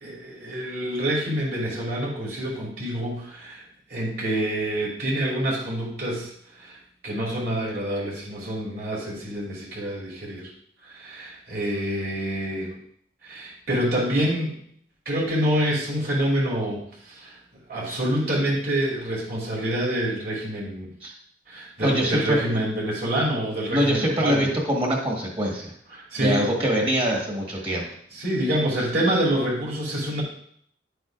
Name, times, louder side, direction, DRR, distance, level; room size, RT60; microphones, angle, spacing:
voice 1, 0.0-3.6 3.9-6.3 6.6-6.8 7.0-10.5 10.8-12.8 13.2-14.5 15.0-17.4 17.7-20.9 21.5-24.5 25.9-26.5 28.1-30.2, right 1 dB, 55° right, -4 dB, 2.8 m, -27 dB
voice 2, 21.8-22.5 23.7-25.7 26.2-27.9, equal, 30° right, -1 dB, 1.7 m, -24 dB
10.5 x 7.8 x 2.5 m, 0.65 s
head